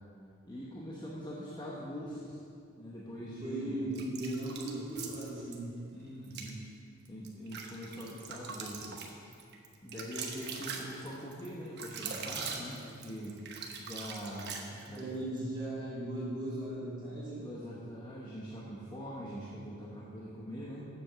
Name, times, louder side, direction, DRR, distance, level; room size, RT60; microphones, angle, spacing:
voice 1, 0.5-2.4 2.8-3.8 5.9-6.6 7.1-9.2 9.8-13.4 13.8-15.0 17.3-20.9, equal, 20° left, -6 dB, 1.0 m, -43 dB
voice 2, 3.4-5.6 14.9-17.4, right 1 dB, 25° right, -9 dB, 2.7 m, -37 dB
sound 1, 3.9-5.6 6.2-6.5 7.0-15.1, right 5 dB, 55° right, 1.0 m, -42 dB
7.6 x 7.1 x 6.8 m, 2.4 s
head